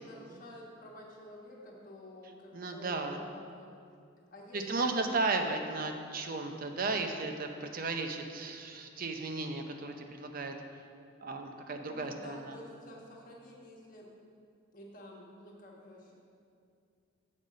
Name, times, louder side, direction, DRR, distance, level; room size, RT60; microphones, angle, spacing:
voice 1, 0.0-3.8 4.2-5.5 11.9-14.1 14.7-16.1, left 1 dB, 40° left, -2 dB, 1.3 m, -50 dB
voice 2, 2.5-3.2 4.5-10.5 11.2-12.5, right 3 dB, 45° right, 5 dB, 0.6 m, -35 dB
7.3 x 5.3 x 6.3 m, 2.4 s
head